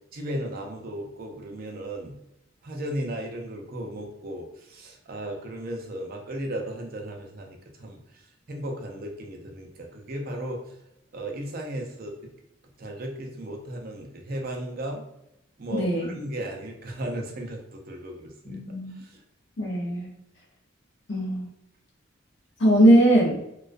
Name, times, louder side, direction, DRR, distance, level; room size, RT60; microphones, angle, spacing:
voice 1, 0.1-2.2 2.6-8.0 8.5-10.6 11.1-12.3 12.8-15.0 15.6-18.6 19.0-19.2, right 1 dB, 45° right, 2 dB, 0.4 m, -35 dB
voice 2, 15.7-16.1 18.5-19.0 19.6-20.1 21.1-21.5 22.6-23.4, right 1 dB, 60° left, -3 dB, 0.7 m, -20 dB
2.3 x 2.2 x 2.4 m, 0.81 s
head